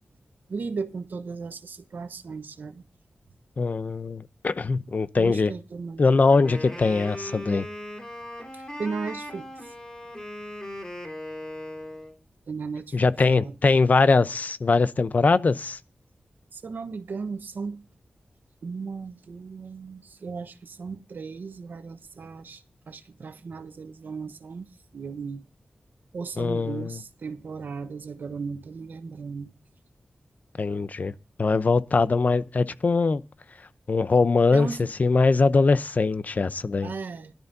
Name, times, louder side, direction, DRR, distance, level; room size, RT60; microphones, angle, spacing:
voice 1, 0.5-2.8 5.1-6.0 8.5-9.7 12.5-13.0 13.3-13.6 16.5-17.8 18.6-25.4 26.1-29.5 34.5-34.9 36.8-37.3, right 5 dB, 80° right, 1.1 m, -36 dB
voice 2, 3.6-5.5 6.0-7.6 12.9-15.8 26.4-27.0 30.6-31.1 31.4-33.2 33.9-34.7 35.0-36.9, left 4 dB, 60° left, 0.7 m, -22 dB
Wind instrument woodwind instrument, 6.3-12.2, left 1 dB, 20° left, 3.9 m, -38 dB
17.5 x 12.0 x 2.7 m
cardioid pair, 50°, 3 cm